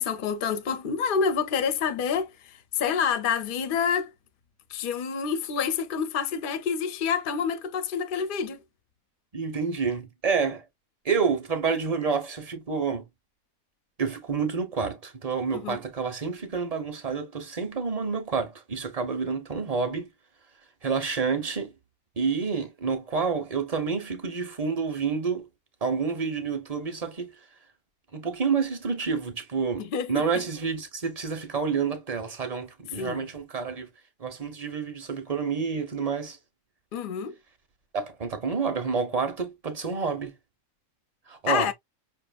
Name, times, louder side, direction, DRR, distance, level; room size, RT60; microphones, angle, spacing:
voice 1, 0.0-4.1 4.7-8.6 15.6-15.8 29.8-30.2 33.0-33.3 36.9-37.3 41.5-41.7, left 6 dB, 55° left, 0.6 m, -28 dB
voice 2, 9.3-10.6 11.0-13.0 14.0-20.1 20.8-21.7 22.2-25.5 25.8-27.3 28.1-33.9 34.2-36.4 37.9-40.3 41.3-41.7, right 5 dB, 35° right, 0.7 m, -29 dB
5.5 x 2.8 x 2.3 m
omnidirectional pair, 1.6 m